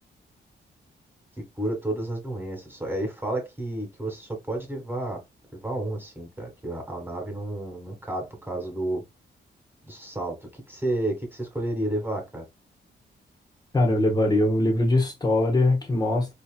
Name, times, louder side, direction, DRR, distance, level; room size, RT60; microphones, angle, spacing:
voice 1, 1.6-5.2 5.6-9.0 9.9-12.5, right 1 dB, 10° right, 1.5 m, -31 dB
voice 2, 13.7-16.3, left 2 dB, 20° left, 1.1 m, -22 dB
4.4 x 2.9 x 2.2 m
wide cardioid pair, 140°, 19 cm